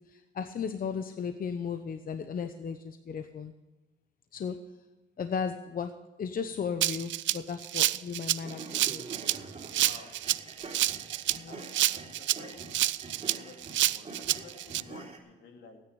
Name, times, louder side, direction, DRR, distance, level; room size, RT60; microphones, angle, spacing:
voice 1, 0.1-3.5 4.3-4.6 5.2-5.9 6.2-9.1 11.4-11.6, left 6 dB, 45° left, 9 dB, 0.9 m, -35 dB
Rattle (instrument), 6.8-14.8, right 14 dB, 70° right, 0.5 m, -28 dB
sound 1, 8.4-15.2, right 3 dB, 30° right, 3.5 m, -45 dB
voice 2, 9.8-10.1 11.5-12.8 13.0-15.8, left 3 dB, 75° left, 3 dB, 2.9 m, -52 dB
17.0 x 9.7 x 5.4 m, 1.1 s
cardioid pair, 90°, 20 cm